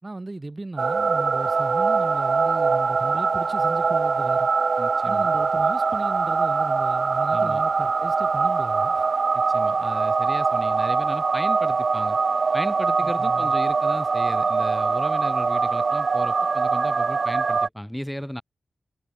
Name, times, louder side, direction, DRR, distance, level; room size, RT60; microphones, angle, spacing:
voice 1, 0.0-4.5 5.0-9.1 13.0-13.5, right 2 dB, 35° right, 5.0 m, -36 dB
sound 1, 0.8-17.7, right 4 dB, 65° right, 1.8 m, -22 dB
voice 2, 4.8-5.3 7.3-7.6 9.3-12.2 12.5-18.4, equal, 5° left, 5.5 m, -35 dB
cardioid pair, 40°, 0 cm